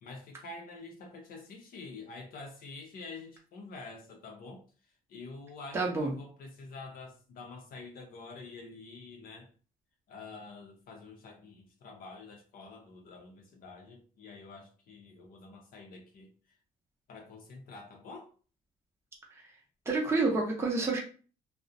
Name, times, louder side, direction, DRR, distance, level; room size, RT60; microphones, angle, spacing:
voice 1, 0.0-4.6 5.1-9.5 10.1-16.3 17.1-18.3, left 3 dB, 60° left, 0.6 m, -47 dB
voice 2, 5.7-6.1 19.9-21.0, right 3 dB, 15° right, 0.6 m, -28 dB
2.4 x 2.0 x 2.6 m
cardioid pair, 110°, 17 cm